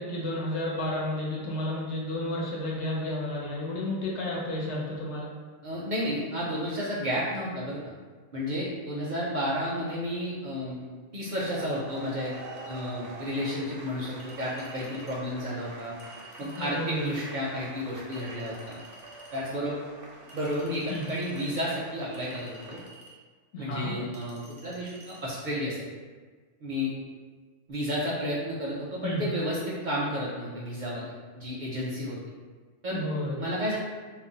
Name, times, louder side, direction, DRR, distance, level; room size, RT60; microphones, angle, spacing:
voice 1, 0.0-5.3 16.4-17.1 20.9-21.1 23.5-23.9 29.0-29.3 32.9-33.4, left 1 dB, 70° left, -5 dB, 1.0 m, -32 dB
voice 2, 5.6-7.9 8.3-15.9 16.4-18.8 19.3-19.8 20.3-22.8 23.6-25.8 26.6-27.0 27.7-32.2 32.8-33.0 33.4-33.8, equal, 55° right, -6 dB, 0.5 m, -32 dB
sound 1, 11.3-22.9, right 3 dB, 85° right, 0.9 m, -46 dB
Chink clink, 14.2-15.2 16.0-16.8 18.1-19.4 20.3-21.4 22.1-23.2 24.1-25.2, right 2 dB, 45° left, 0.7 m, -52 dB
2.5 x 2.0 x 3.8 m, 1.5 s
omnidirectional pair, 1.2 m